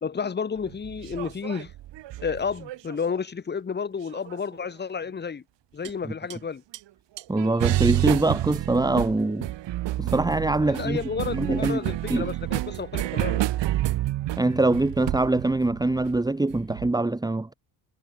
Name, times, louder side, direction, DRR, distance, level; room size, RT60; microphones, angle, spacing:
voice 1, 0.0-1.7 2.2-5.4 5.7-6.6 10.6-13.5, left 6 dB, 20° left, 1.4 m, -31 dB
sound 1, 0.6-3.2 4.1-4.7 5.8-6.0 6.3-6.4 6.7-6.8 7.2-16.9, right 14 dB, 65° right, 2.4 m, -29 dB
voice 2, 7.3-9.5 10.0-11.0 11.3-11.8 12.1-12.3 14.4-17.5, right 2 dB, 10° right, 1.8 m, -23 dB
cardioid pair, 130°, 46 cm